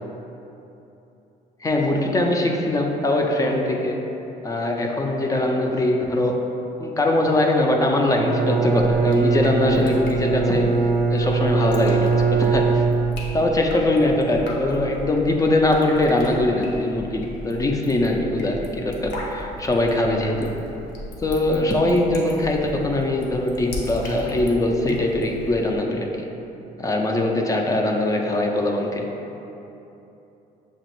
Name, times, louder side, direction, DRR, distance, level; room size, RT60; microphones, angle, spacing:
voice 1, 1.6-4.0 4.4-6.5 6.8-12.8 13.3-20.6 21.2-26.3 26.8-29.1, left 1 dB, 20° left, 1 dB, 0.4 m, -22 dB
Bowed string instrument, 8.1-13.5, right 4 dB, 60° right, 0.5 m, -21 dB
Drip, 8.8-25.8, left 1 dB, 85° left, 0.8 m, -37 dB
6.7 x 2.4 x 3.0 m, 3.0 s
cardioid pair, 110°, 17 cm